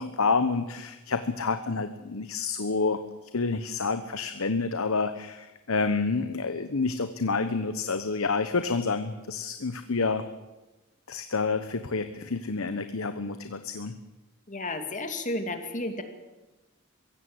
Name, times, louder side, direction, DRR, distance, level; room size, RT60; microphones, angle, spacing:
voice 1, 0.0-3.0 3.3-10.2 11.1-13.9, left 4 dB, 70° left, 10 dB, 1.0 m, -28 dB
voice 2, 14.5-16.0, left 2 dB, 35° left, 7 dB, 2.4 m, -32 dB
22.5 x 16.5 x 7.9 m, 1.1 s
head